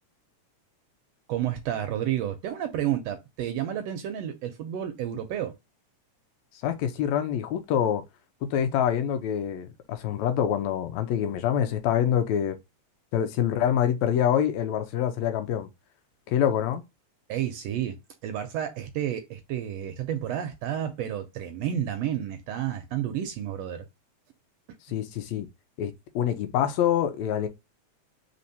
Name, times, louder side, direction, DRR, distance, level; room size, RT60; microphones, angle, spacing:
voice 1, 1.3-5.6 17.3-18.0 18.2-23.8, right 11 dB, 75° right, 1.6 m, -30 dB
voice 2, 6.6-8.0 8.4-12.6 13.1-15.7 16.3-16.8 24.9-25.5 25.8-27.5, left 9 dB, 80° left, 1.9 m, -26 dB
4.3 x 3.6 x 2.7 m
omnidirectional pair, 3.4 m